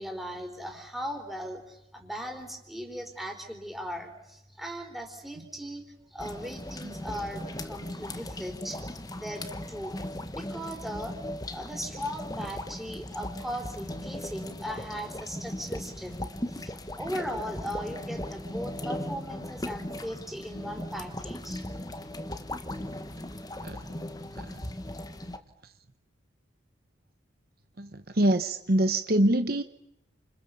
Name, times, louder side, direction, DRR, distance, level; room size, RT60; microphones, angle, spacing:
voice 1, 0.0-5.8 6.1-8.8 9.2-9.9 10.3-11.2 11.5-21.6, equal, ahead, 3 dB, 4.1 m, -38 dB
sound 1, 6.2-25.4, left 1 dB, 20° left, 1.4 m, -38 dB
voice 2, 27.8-29.6, right 1 dB, 50° right, 9 dB, 1.1 m, -25 dB
29.5 x 27.0 x 7.0 m, 0.84 s
head